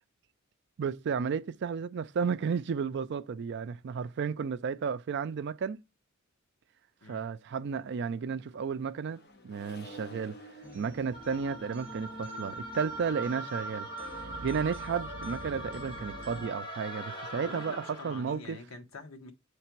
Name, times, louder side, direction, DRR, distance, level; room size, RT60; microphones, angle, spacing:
voice 1, 0.8-5.8 7.1-10.4 10.7-13.9 14.4-17.8 18.0-18.6, right 6 dB, 55° right, 0.4 m, -33 dB
Accelerating revving vroom, 8.1-14.8, equal, 50° left, 1.1 m, -53 dB
sound 1, 10.6-16.5, right 1 dB, 25° right, 1.2 m, -47 dB
sound 2, 11.1-18.4, right 1 dB, 20° left, 1.5 m, -41 dB
voice 2, 17.4-19.3, left 3 dB, 80° left, 1.0 m, -46 dB
6.8 x 3.3 x 4.5 m
head